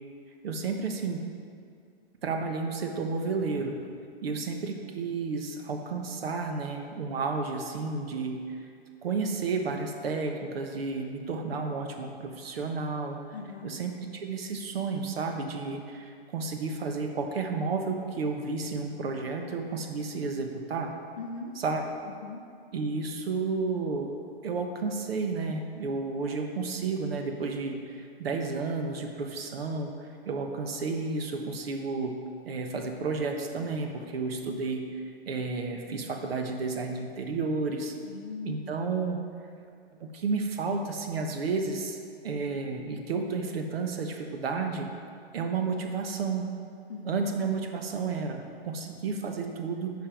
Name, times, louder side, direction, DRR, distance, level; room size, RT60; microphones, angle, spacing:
voice 1, 0.4-1.2 2.2-3.8 4.2-8.4 9.0-13.2 13.6-13.9 14.2-20.9 21.6-21.8 22.7-24.1 24.4-29.9 30.3-32.2 32.5-34.9 35.3-37.9 38.4-39.2 40.1-42.0 42.2-44.9 45.3-46.5 47.0-49.9, right 4 dB, 65° right, 3 dB, 1.1 m, -31 dB
voice 2, 13.3-13.7 21.2-21.5 22.2-22.4 38.0-38.8 46.9-47.3, left 4 dB, 30° left, 1 dB, 0.4 m, -40 dB
9.0 x 5.6 x 4.5 m, 2.3 s
hypercardioid pair, 175°, 32 cm